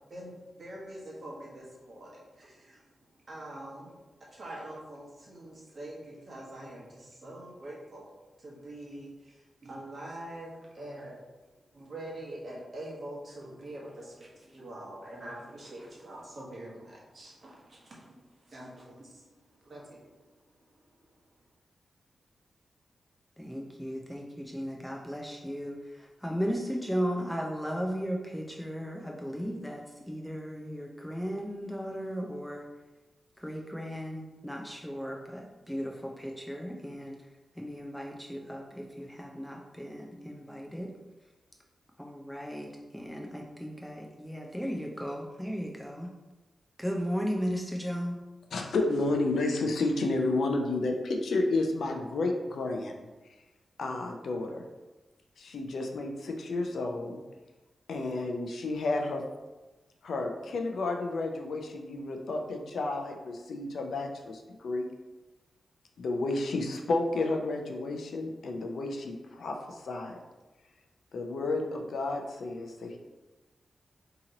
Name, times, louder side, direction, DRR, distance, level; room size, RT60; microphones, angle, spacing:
voice 1, 0.1-2.8 3.3-4.0 4.3-8.1 8.4-11.2 11.7-20.3 20.8-20.9, right 1 dB, 45° right, -4 dB, 1.0 m, -44 dB
voice 2, 23.4-32.6 33.4-37.1 37.6-40.9 42.0-46.1 46.8-48.2, equal, ahead, 0 dB, 0.3 m, -36 dB
voice 3, 48.5-53.0 53.8-54.6 55.4-57.2 57.9-59.2 60.0-64.8 66.0-70.2 71.1-73.0, left 2 dB, 80° left, 3 dB, 0.4 m, -31 dB
2.9 x 2.8 x 3.7 m, 1.1 s
wide cardioid pair, 110°, 0 cm